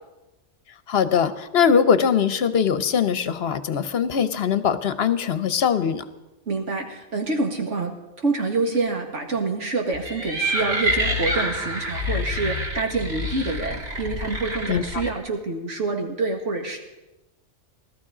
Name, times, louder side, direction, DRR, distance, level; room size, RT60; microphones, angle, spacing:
voice 1, 0.9-6.0 14.7-14.8, left 7 dB, 60° left, 12 dB, 0.9 m, -21 dB
voice 2, 6.5-16.8, right 3 dB, 90° right, 2 dB, 2.1 m, -27 dB
sound 1, 9.9-15.1, equal, 60° right, 2.6 m, -27 dB
17.0 x 13.0 x 4.9 m, 1.0 s
omnidirectional pair, 1.2 m